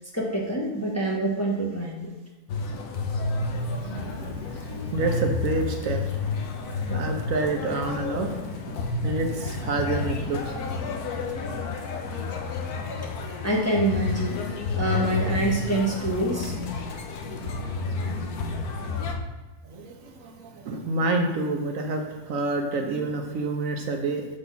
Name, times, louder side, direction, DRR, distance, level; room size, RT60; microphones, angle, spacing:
voice 1, 0.1-2.1 13.4-16.5, right 1 dB, 10° left, -4 dB, 1.0 m, -26 dB
sound 1, 2.5-19.2, left 3 dB, 85° left, 1.3 m, -30 dB
voice 2, 3.5-6.0 6.3-10.6 19.6-24.3, right 2 dB, 65° right, 3 dB, 1.1 m, -29 dB
6.2 x 4.0 x 5.7 m, 1.2 s
omnidirectional pair, 1.6 m